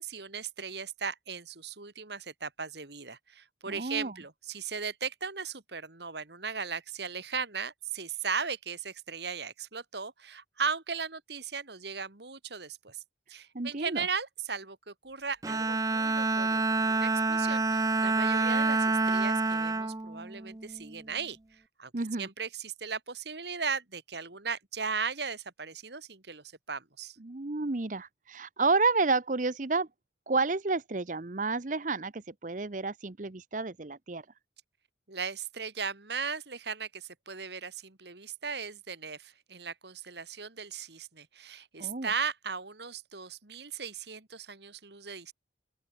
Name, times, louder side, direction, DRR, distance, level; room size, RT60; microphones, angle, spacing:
voice 1, 0.0-13.0 13.3-21.9 22.2-27.2 35.1-45.3, right 5 dB, 65° right, 2.3 m, -37 dB
voice 2, 3.7-4.1 13.5-14.0 21.9-22.3 27.2-29.9 30.3-34.2 41.8-42.1, right 3 dB, 45° right, 0.8 m, -30 dB
Bowed string instrument, 15.4-21.0, right 3 dB, 20° right, 0.5 m, -28 dB
open air
head